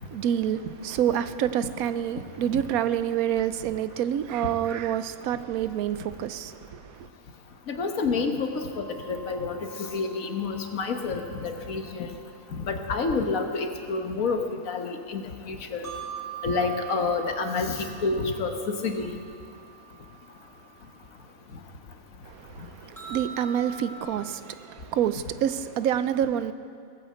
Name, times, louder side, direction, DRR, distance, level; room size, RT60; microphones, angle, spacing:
voice 1, 0.0-7.1 22.2-26.5, right 10 dB, 80° right, 1.1 m, -28 dB
voice 2, 7.7-12.1 12.5-14.4 14.7-15.9 16.4-19.2, left 4 dB, 70° left, 1.6 m, -29 dB
sound 1, 8.7-12.5 13.3-13.4 15.7-21.2 21.5-21.6 22.0-22.1 22.9-24.0, right 8 dB, ahead, 4.9 m, -44 dB
19.0 x 8.7 x 7.7 m
omnidirectional pair, 1.5 m